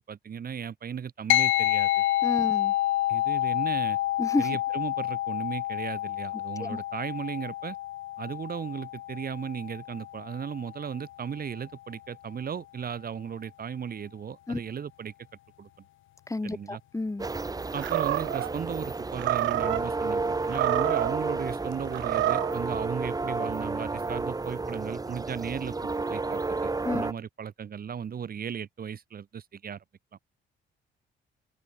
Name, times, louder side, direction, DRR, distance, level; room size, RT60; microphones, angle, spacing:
voice 1, 0.1-2.0 3.1-4.0 4.4-7.8 8.2-15.1 15.6-15.7 16.4-16.8 17.7-25.7 26.1-29.8 30.1-30.2, right 7 dB, 50° right, 2.2 m, -36 dB
sound 1, 1.3-11.0, left 14 dB, 80° left, 1.1 m, -28 dB
voice 2, 2.2-2.7 4.2-4.5 6.6-6.8 14.5-14.6 16.3-17.3 26.8-27.0, left 2 dB, 15° left, 3.1 m, -30 dB
sound 2, 17.2-27.1, right 3 dB, 20° right, 1.2 m, -31 dB
Animal, 17.8-18.5 19.2-19.8 20.4-21.2 21.9-22.6, right 15 dB, 70° right, 0.5 m, -28 dB
open air
cardioid pair, 90°, 20 cm